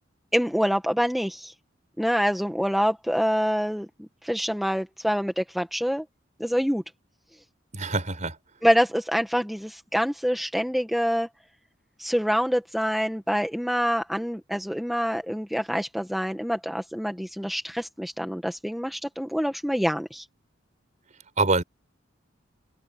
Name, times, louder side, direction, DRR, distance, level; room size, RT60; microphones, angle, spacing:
voice 1, 0.3-1.5 2.0-3.9 4.2-6.0 6.4-6.8 8.6-11.3 12.0-20.2, equal, ahead, 1.4 m, -26 dB
voice 2, 7.7-8.3 21.4-21.6, right 3 dB, 40° right, 4.7 m, -24 dB
head